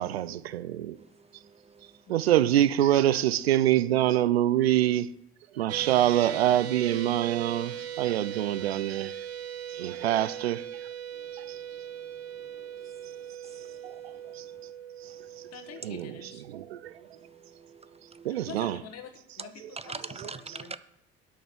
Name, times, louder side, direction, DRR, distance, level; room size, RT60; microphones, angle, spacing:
voice 1, 0.0-1.0 2.1-5.1 5.5-9.2 9.7-10.9 11.3-11.6 13.8-14.5 15.0-15.5 15.8-17.0 18.2-18.8 20.2-20.6, right 12 dB, 80° right, 0.5 m, -26 dB
voice 2, 1.0-1.9 10.0-10.1 11.2-11.3 11.5-11.6 12.4-13.8 14.1-14.2 17.2-18.3 19.9-20.8, right 4 dB, 20° right, 0.5 m, -46 dB
voice 3, 2.1-2.4 15.5-16.4 18.3-20.8, left 8 dB, 55° left, 1.6 m, -47 dB
sound 1, 5.7-18.0, right 9 dB, 50° right, 1.1 m, -40 dB
9.3 x 6.3 x 6.7 m
figure-of-eight pair, 50°, 31 cm